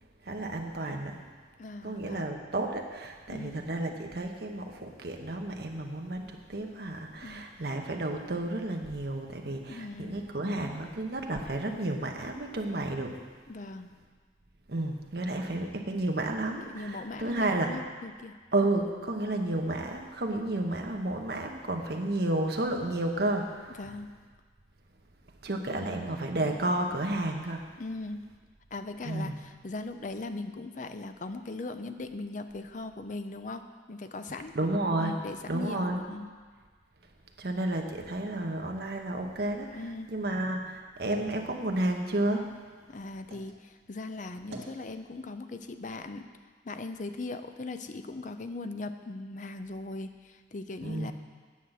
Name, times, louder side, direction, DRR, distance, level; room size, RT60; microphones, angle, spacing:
voice 1, 0.2-1.2 1.8-13.1 14.7-17.8 18.5-23.8 25.4-27.6 29.0-29.4 34.5-35.1 35.5-36.0 37.4-39.8 40.1-42.5 50.8-51.1, right 1 dB, 60° right, 3 dB, 1.0 m, -31 dB
voice 2, 1.6-2.3 3.3-3.6 7.2-7.5 9.7-10.2 13.5-13.9 16.6-18.4 23.8-24.1 25.7-26.1 27.8-28.3 28.7-34.5 35.0-36.4 39.8-40.1 42.9-46.3 46.6-51.1, left 2 dB, 45° left, 9 dB, 0.5 m, -39 dB
sound 1, 40.9-43.6 44.0-44.8, right 1 dB, 75° right, 1.6 m, -51 dB
9.4 x 5.8 x 7.8 m, 1.5 s
head